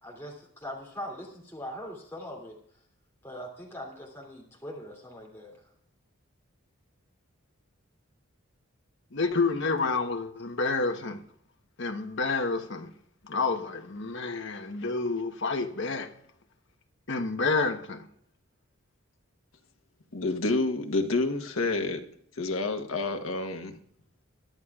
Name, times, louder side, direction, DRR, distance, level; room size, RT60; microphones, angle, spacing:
voice 1, 0.0-2.6 3.2-5.5, equal, 10° left, 2.8 m, -41 dB
voice 2, 9.1-11.2 11.8-12.9 13.3-16.1 17.1-18.1, left 3 dB, 60° left, 1.0 m, -29 dB
voice 3, 20.1-22.0 22.4-23.8, left 3 dB, 75° left, 1.2 m, -28 dB
22.0 x 11.0 x 2.4 m
head